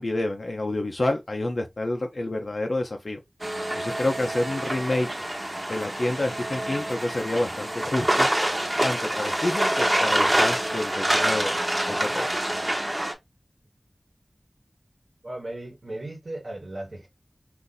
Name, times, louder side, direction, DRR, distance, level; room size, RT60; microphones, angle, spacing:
voice 1, 0.0-3.2 3.7-5.1 5.7-8.3 8.8-11.6 11.9-12.3, left 2 dB, 65° left, 0.5 m, -28 dB
sound 1, 3.4-13.1, right 1 dB, 30° right, 0.9 m, -26 dB
voice 2, 15.2-17.1, right 1 dB, 75° right, 1.1 m, -36 dB
2.6 x 2.5 x 3.9 m
wide cardioid pair, 60°, 0 cm